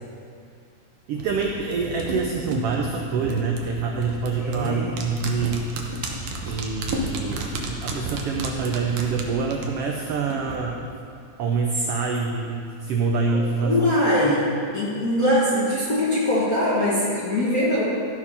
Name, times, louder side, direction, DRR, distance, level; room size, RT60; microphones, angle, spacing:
sound 1, 1.1-10.6 10.9-11.0, right 1 dB, 65° right, 1.4 m, -32 dB
voice 1, 1.1-5.8 6.4-10.8 11.4-14.0, right 4 dB, 85° right, 1 dB, 1.3 m, -26 dB
voice 2, 4.3-4.9 13.3-14.5 14.7-17.8, left 1 dB, 55° left, -7 dB, 1.0 m, -22 dB
13.5 x 4.8 x 5.5 m, 2.4 s
omnidirectional pair, 3.4 m